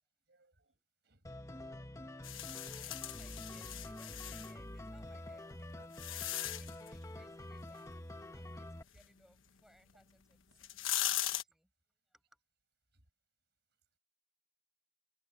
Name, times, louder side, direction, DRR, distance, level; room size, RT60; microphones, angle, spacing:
voice 1, 0.7-1.2 2.0-7.9 8.3-11.7 12.1-12.4, equal, ahead, 7.9 m, -68 dB
sound 1, 1.2-8.8, left 1 dB, 15° left, 1.2 m, -47 dB
sound 2, 2.2-4.5 5.3-6.9 9.9-10.0 10.5-11.4, left 13 dB, 90° left, 1.3 m, -38 dB
voice 2, 2.5-2.9 3.5-3.6, right 2 dB, 55° right, 6.5 m, -67 dB
head